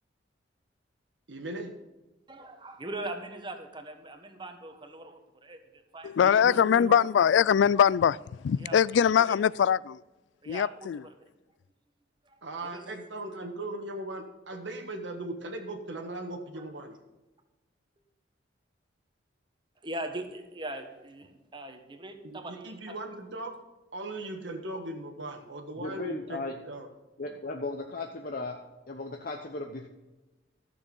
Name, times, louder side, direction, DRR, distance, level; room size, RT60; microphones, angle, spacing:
voice 1, 1.3-1.7 6.2-7.1 12.4-17.0 22.2-23.6 23.9-26.4 26.7-26.9 27.2-27.3, right 2 dB, 75° right, 1.4 m, -38 dB
voice 2, 2.3-6.2 6.5-6.6 8.6-9.4 10.4-11.3 12.2-13.0 16.6-16.7 19.8-22.9, right 1 dB, 25° right, 1.3 m, -41 dB
voice 3, 6.2-8.2 8.4-10.0 10.5-11.0, left 8 dB, 75° left, 0.3 m, -22 dB
voice 4, 25.8-26.6 27.2-28.6 28.9-29.9, left 3 dB, 50° left, 0.9 m, -36 dB
14.0 x 7.0 x 5.4 m
head